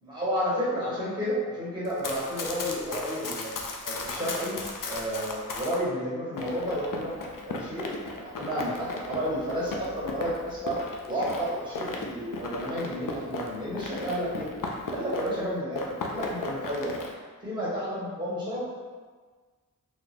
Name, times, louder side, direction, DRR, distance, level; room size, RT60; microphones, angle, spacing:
voice 1, 0.0-3.5 3.8-4.6 4.8-7.9 8.2-10.8 11.1-14.5 14.9-16.9 17.4-18.6, equal, 15° right, -8 dB, 1.5 m, -31 dB
Run, 1.8-5.8 6.4-15.5 15.7-17.1, left 3 dB, 75° left, 0.5 m, -36 dB
4.0 x 2.1 x 3.0 m, 1.4 s
wide cardioid pair, 75°, 33 cm